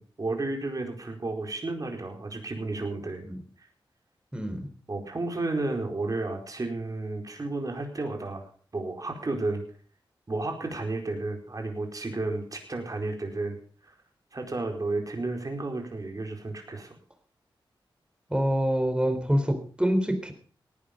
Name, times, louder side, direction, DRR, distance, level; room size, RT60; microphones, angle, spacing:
voice 1, 0.0-3.2 4.9-8.5 8.7-9.6 10.3-13.6 14.3-16.9, right 2 dB, 40° right, 3 dB, 4.5 m, -32 dB
voice 2, 4.3-4.7 18.3-20.3, equal, 10° right, 8 dB, 3.7 m, -26 dB
18.0 x 10.0 x 5.2 m, 0.42 s
cardioid pair, 65°, 9 cm